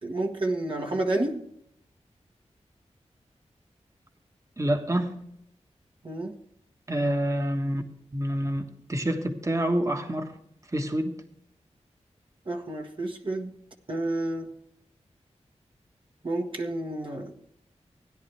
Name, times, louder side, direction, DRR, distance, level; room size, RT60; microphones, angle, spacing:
voice 1, 0.0-1.4 6.0-6.3 12.5-13.5 13.9-14.5 16.2-17.3, right 2 dB, 45° right, 1.3 m, -30 dB
voice 2, 4.6-5.2 6.9-7.8 8.1-10.3 10.7-11.2, right 1 dB, 25° right, 1.3 m, -27 dB
17.0 x 10.0 x 3.3 m
wide cardioid pair, 70°, 12 cm